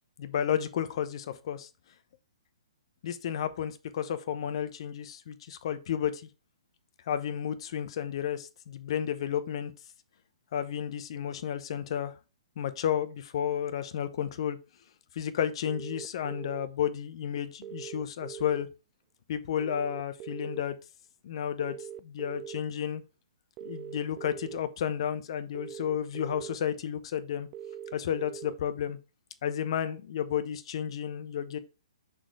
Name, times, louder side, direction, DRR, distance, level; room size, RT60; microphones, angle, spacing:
voice 1, 0.2-1.7 3.0-6.2 7.1-9.7 10.5-12.1 12.6-14.6 15.2-18.7 19.3-20.8 21.2-21.8 22.0-23.0 23.6-27.5 27.9-29.0 29.4-31.6, left 9 dB, 50° left, 0.9 m, -32 dB
sound 1, 15.6-16.7 17.6-18.6 19.6-20.6 21.6-22.6 23.6-24.6 25.5-26.6 27.5-28.5, right 10 dB, 25° right, 0.4 m, -42 dB
6.2 x 4.1 x 4.6 m
hypercardioid pair, 140°, 4 cm